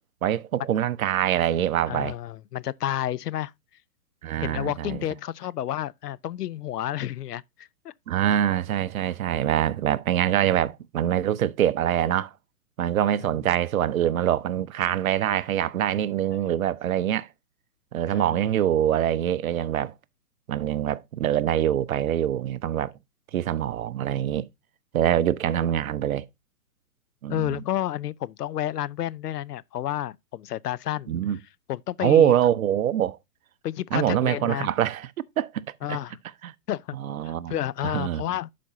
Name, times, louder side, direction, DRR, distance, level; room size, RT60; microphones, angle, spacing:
voice 1, 0.2-2.2 4.2-5.0 8.1-12.3 12.8-17.3 17.9-19.9 20.5-22.9 23.3-24.5 24.9-26.2 27.2-27.6 31.1-31.4 32.0-33.2 33.9-35.1 35.4-36.0 36.4-36.5 36.9-37.6 37.8-38.2, right 11 dB, 60° right, 0.7 m, -24 dB
voice 2, 1.9-3.5 4.4-7.9 13.3-13.4 18.1-18.4 27.3-31.1 31.7-32.4 33.6-34.7 35.8-36.2 36.7-37.0 37.2-38.5, left 12 dB, 85° left, 0.6 m, -30 dB
11.5 x 5.1 x 2.7 m
hypercardioid pair, 150°, 47 cm